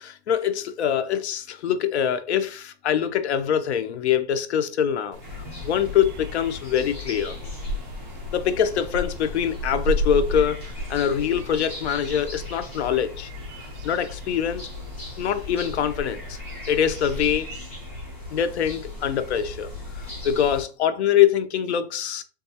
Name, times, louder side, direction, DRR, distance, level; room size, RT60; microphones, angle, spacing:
voice 1, 0.0-5.2 5.6-7.4 8.3-13.3 13.6-14.7 15.2-16.4 16.7-17.5 18.3-19.7 19.9-22.2, left 9 dB, 75° left, 0.6 m, -24 dB
sound 1, 5.1-17.4, right 1 dB, 90° right, 0.6 m, -35 dB
sound 2, 5.2-20.6, left 3 dB, 10° left, 0.4 m, -38 dB
3.9 x 2.3 x 2.7 m
supercardioid pair, 175°, 33 cm